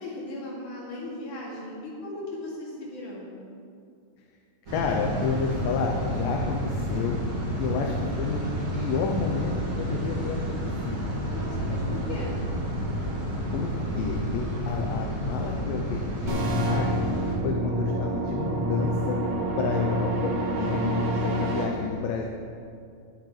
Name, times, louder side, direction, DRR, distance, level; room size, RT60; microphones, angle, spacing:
voice 1, 0.0-3.3 7.6-8.0 11.3-12.4 17.3-17.6 20.5-21.5, left 2 dB, 60° left, -5 dB, 3.9 m, -37 dB
voice 2, 4.7-7.2 7.6-8.4 8.7-10.6 10.9-11.1 13.5-17.0 17.4-19.2 19.6-20.8 21.2-22.3, left 5 dB, 80° left, 1 dB, 2.4 m, -30 dB
sound 1, 4.7-17.4, equal, 35° right, 3.3 m, -30 dB
sound 2, 16.3-21.6, right 1 dB, 85° right, 0.9 m, -27 dB
20.0 x 7.8 x 3.3 m, 2.4 s
omnidirectional pair, 4.0 m